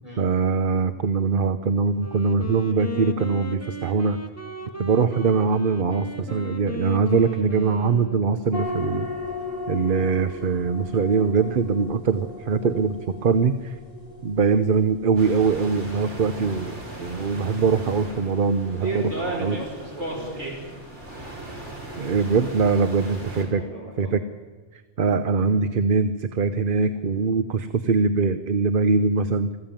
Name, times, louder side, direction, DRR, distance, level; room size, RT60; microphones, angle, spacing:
voice 1, 0.2-4.2 4.8-9.1 9.7-13.8 14.2-19.1 19.4-19.6 22.0-23.6 24.0-24.2 24.7-29.6, right 5 dB, 50° right, 11 dB, 1.0 m, -22 dB
Wind instrument woodwind instrument, 2.0-8.7, right 1 dB, 15° left, 1.7 m, -36 dB
sound 1, 8.5-23.3, left 2 dB, 35° left, 4.2 m, -38 dB
sound 2, 15.2-23.4, right 2 dB, 90° right, 4.9 m, -35 dB
voice 2, 18.8-20.7 23.5-24.1, right 1 dB, 30° right, 0 dB, 5.4 m, -39 dB
20.5 x 15.0 x 8.9 m, 1.5 s
omnidirectional pair, 1.2 m